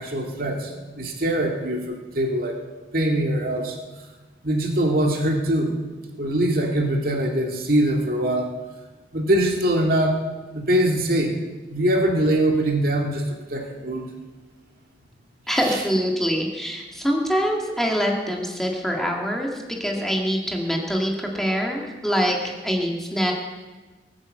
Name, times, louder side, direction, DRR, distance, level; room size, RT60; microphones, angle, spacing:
voice 1, 0.0-2.6 2.9-3.8 4.4-5.7 6.2-8.5 9.1-10.2 10.5-11.3 11.7-14.1 15.7-15.8, right 1 dB, 55° right, 1 dB, 2.1 m, -22 dB
voice 2, 15.5-22.4 22.6-23.3, equal, ahead, 0 dB, 1.8 m, -24 dB
19.0 x 8.9 x 7.7 m, 1.2 s
head